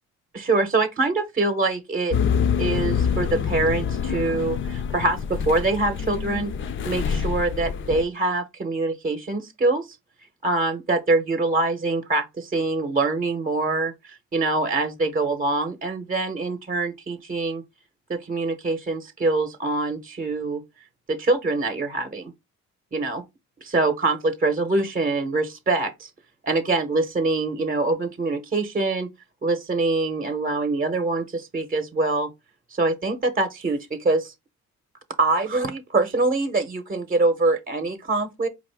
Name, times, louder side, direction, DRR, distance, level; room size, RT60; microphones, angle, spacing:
voice 1, 0.3-2.2 2.6-6.5 6.8-10.0 10.4-17.6 18.1-20.6 21.1-22.3 22.9-23.2 23.6-26.1 26.4-29.1 29.4-32.3 32.7-34.3 35.2-38.5, right 3 dB, 30° right, 0.8 m, -24 dB
sound 1, 2.1-8.0, left 7 dB, 40° left, 0.5 m, -26 dB
5.0 x 2.5 x 3.3 m
cardioid pair, 90°, 30 cm